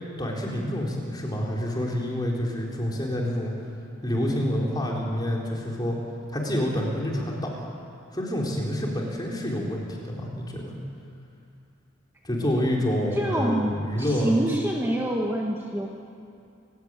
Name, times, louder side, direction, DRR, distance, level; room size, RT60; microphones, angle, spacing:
voice 1, 0.2-3.5 4.0-6.0 6.3-7.5 8.1-10.7 12.2-14.4, equal, 20° left, -2 dB, 4.3 m, -27 dB
voice 2, 13.1-15.9, right 1 dB, 10° right, -2 dB, 1.7 m, -26 dB
29.5 x 16.5 x 9.2 m, 2.5 s
head